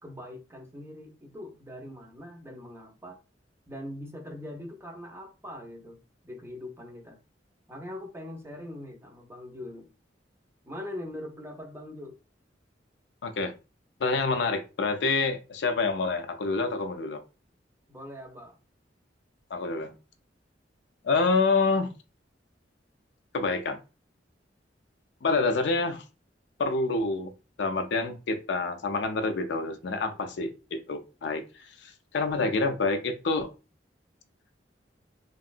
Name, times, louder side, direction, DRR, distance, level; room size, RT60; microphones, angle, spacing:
voice 1, 0.0-3.2 3.7-7.2 7.7-9.9 10.6-12.2 17.9-18.6, left 1 dB, 15° right, 0.6 m, -42 dB
voice 2, 13.2-13.5 14.0-17.2 19.5-19.9 21.0-21.9 23.3-23.8 25.2-26.0 26.6-27.3 27.6-31.4 31.8-33.5, left 3 dB, 65° left, 0.4 m, -27 dB
3.1 x 2.7 x 2.5 m
head